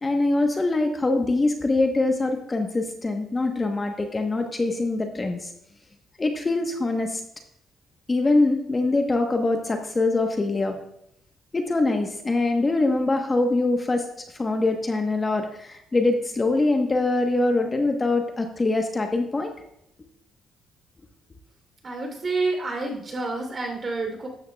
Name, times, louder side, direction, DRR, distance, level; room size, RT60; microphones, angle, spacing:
voice 1, 0.0-5.5 6.2-7.2 8.1-10.8 11.5-14.0 14.4-19.5, left 2 dB, 25° left, 4 dB, 1.1 m, -23 dB
voice 2, 21.8-24.3, right 3 dB, 35° right, 3 dB, 3.2 m, -28 dB
13.0 x 9.5 x 2.3 m, 0.76 s
cardioid pair, 90°, 0 cm